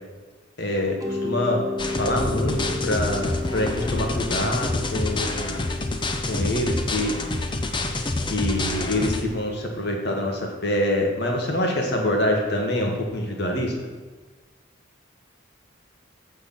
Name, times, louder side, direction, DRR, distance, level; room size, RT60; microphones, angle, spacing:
voice 1, 0.6-5.6 6.3-7.1 8.2-13.8, left 1 dB, 55° left, 1 dB, 1.8 m, -25 dB
Mallet percussion, 1.0-9.8, left 2 dB, 15° right, 0.8 m, -35 dB
sound 1, 1.8-9.2, left 2 dB, 25° left, 0.7 m, -27 dB
8.3 x 6.4 x 7.3 m, 1.3 s
head